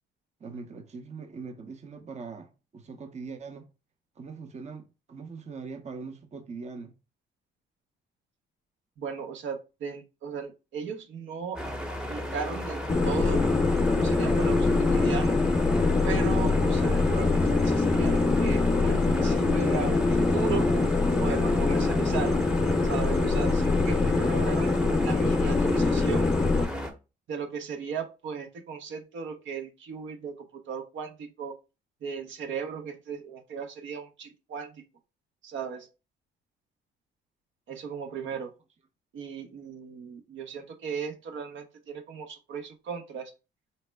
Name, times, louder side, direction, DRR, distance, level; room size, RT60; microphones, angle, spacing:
voice 1, 0.4-3.7 4.2-6.9 38.1-38.4, right 4 dB, 35° right, 0.7 m, -41 dB
voice 2, 9.0-11.7 12.1-13.5 13.9-15.4 16.0-20.7 21.2-22.4 22.8-26.3 27.3-31.5 32.0-34.8 35.4-35.9 37.7-38.5 39.1-43.3, right 6 dB, 70° right, 0.7 m, -37 dB
sound 1, 11.6-26.9, equal, 5° right, 0.8 m, -34 dB
sound 2, 12.9-26.7, left 3 dB, 20° left, 0.4 m, -24 dB
4.2 x 2.0 x 3.3 m
cardioid pair, 90°, 20 cm